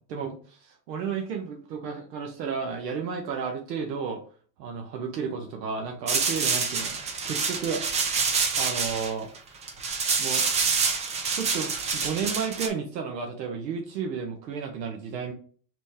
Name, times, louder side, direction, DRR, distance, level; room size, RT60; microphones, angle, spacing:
voice 1, 0.0-4.2 4.6-7.8 8.2-9.3 10.2-10.4 11.3-15.3, right 6 dB, 80° right, 2 dB, 1.1 m, -32 dB
sound 1, 6.1-12.7, right 5 dB, 15° right, 0.3 m, -27 dB
4.2 x 3.0 x 3.3 m, 0.42 s
hypercardioid pair, 100°, 49 cm